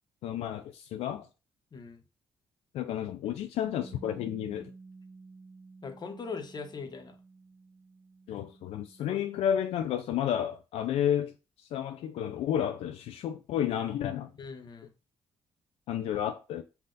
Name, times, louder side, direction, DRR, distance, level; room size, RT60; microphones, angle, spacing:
voice 1, 0.2-1.3 2.7-4.7 8.3-11.3 11.7-14.3 15.9-16.6, left 10 dB, 85° left, 0.4 m, -31 dB
voice 2, 1.7-2.0 5.8-7.2 9.1-9.2 14.4-14.9, left 4 dB, 45° left, 1.0 m, -40 dB
Bass guitar, 3.6-9.9, right 4 dB, 55° right, 1.4 m, -52 dB
5.6 x 2.4 x 3.8 m
cardioid pair, 80°, 10 cm